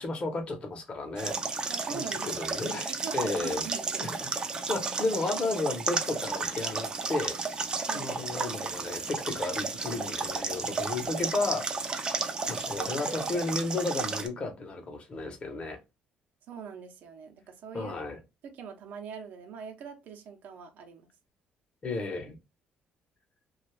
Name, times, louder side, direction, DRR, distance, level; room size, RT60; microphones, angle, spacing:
voice 1, 0.0-1.4 1.9-2.9 3.1-3.6 4.0-4.1 4.5-7.4 7.9-11.7 12.5-15.8 17.7-18.2 21.8-22.4, left 3 dB, 35° left, 0.8 m, -33 dB
sound 1, 1.2-14.3, right 4 dB, 25° right, 0.4 m, -33 dB
voice 2, 1.7-4.1 7.9-8.1 16.5-17.9 18.4-21.1, right 6 dB, 70° right, 0.7 m, -43 dB
2.5 x 2.3 x 3.2 m
cardioid pair, 120°, 3 cm